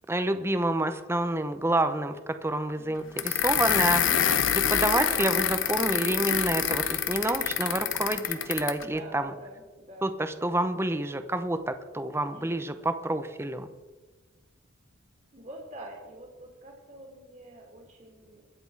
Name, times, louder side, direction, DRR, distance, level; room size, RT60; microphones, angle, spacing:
voice 1, 0.1-4.0 4.5-9.3 10.0-13.7, right 1 dB, 15° right, 9 dB, 0.7 m, -28 dB
voice 2, 2.7-3.1 8.8-10.2 12.3-12.7 15.3-18.5, right 1 dB, 40° right, -1 dB, 2.3 m, -47 dB
sound 1, 3.2-8.8, left 9 dB, 70° left, 1.0 m, -26 dB
22.5 x 7.8 x 4.7 m, 1.2 s
head